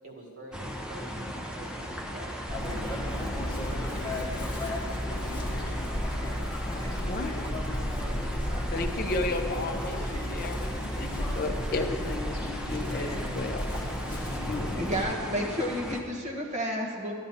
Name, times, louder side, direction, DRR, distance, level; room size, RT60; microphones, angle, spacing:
voice 1, 0.0-2.4 2.7-4.0 6.6-7.0, right 1 dB, 80° right, -2 dB, 2.0 m, -46 dB
sound 1, 0.5-16.0, equal, 5° right, 0.6 m, -38 dB
Chirp tweet, 2.5-15.0, left 1 dB, 20° left, 1.4 m, -33 dB
voice 2, 7.1-7.4 8.7-13.8 14.4-14.9 15.3-15.5, left 2 dB, 45° left, 5 dB, 0.6 m, -34 dB
voice 3, 14.7-17.1, equal, 35° right, -2 dB, 1.2 m, -31 dB
13.5 x 10.5 x 2.8 m, 2.3 s
head